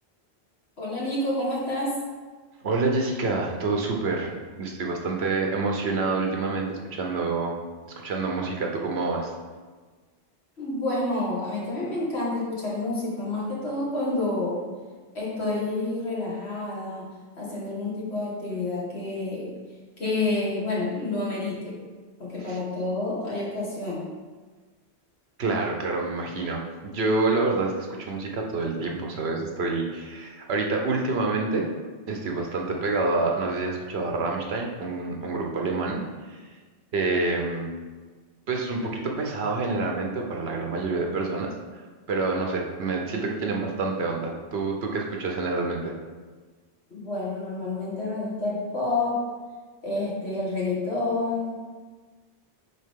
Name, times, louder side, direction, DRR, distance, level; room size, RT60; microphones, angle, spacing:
voice 1, 0.8-2.0 10.6-14.6 15.1-17.1 17.4-19.5 20.0-21.8 22.2-24.1 46.9-49.3 49.8-51.5, left 2 dB, 75° left, -6 dB, 2.2 m, -29 dB
voice 2, 2.6-4.3 4.6-7.5 7.9-9.3 22.5-22.6 25.4-31.7 32.1-36.0 36.3-36.4 36.9-37.7 38.5-41.5 42.1-45.9, right 3 dB, 75° right, 1 dB, 1.2 m, -27 dB
9.9 x 3.7 x 3.7 m, 1.4 s
omnidirectional pair, 1.1 m